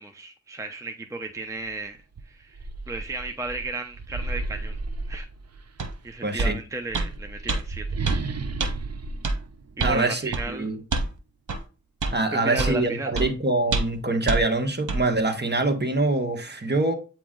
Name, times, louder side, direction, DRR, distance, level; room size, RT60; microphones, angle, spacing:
voice 1, 0.0-2.0 2.3-4.8 5.1-5.3 6.0-7.9 8.3-8.4 9.8-10.7 12.3-13.1, right 2 dB, 10° right, 0.7 m, -34 dB
sound 1, 1.6-1.7 2.1-5.8 6.7-10.3, right 3 dB, 55° right, 0.7 m, -34 dB
sound 2, 5.8-5.9 6.4-6.6 6.9-7.1 7.5-7.6 8.1-8.2 8.6-8.7 9.2-9.4 9.8-10.0 10.3-10.5 10.9-11.1 11.5-11.6 12.0-12.2 12.6-12.8 13.2-13.3 13.7-14.0 14.3-14.4 14.9-15.0, right 3 dB, 90° right, 0.9 m, -25 dB
voice 2, 6.2-6.6 9.8-10.8 12.1-17.0, right 2 dB, 35° right, 1.3 m, -24 dB
8.4 x 3.0 x 3.7 m
wide cardioid pair, 50°, 30 cm